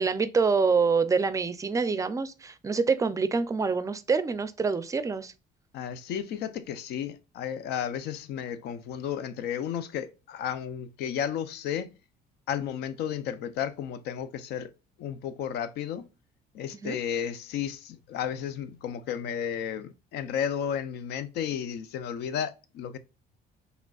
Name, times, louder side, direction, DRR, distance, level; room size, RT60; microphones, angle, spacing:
voice 1, 0.0-5.3 16.8-17.0, right 5 dB, 20° right, 0.4 m, -26 dB
voice 2, 5.7-11.9 12.5-14.7 15.0-16.1 16.5-23.0, left 9 dB, 75° left, 0.5 m, -33 dB
4.9 x 3.2 x 2.3 m
cardioid pair, 110°, 17 cm